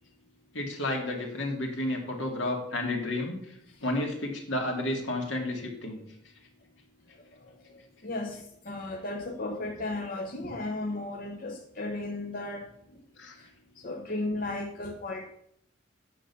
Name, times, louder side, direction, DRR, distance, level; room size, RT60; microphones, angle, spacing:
voice 1, 0.5-3.4 3.8-6.0 13.2-13.3, left 1 dB, 75° left, 1 dB, 2.3 m, -31 dB
voice 2, 8.0-8.4 8.7-12.6 13.8-15.3, left 2 dB, 45° left, 2 dB, 0.9 m, -34 dB
9.0 x 6.5 x 5.5 m, 0.70 s
head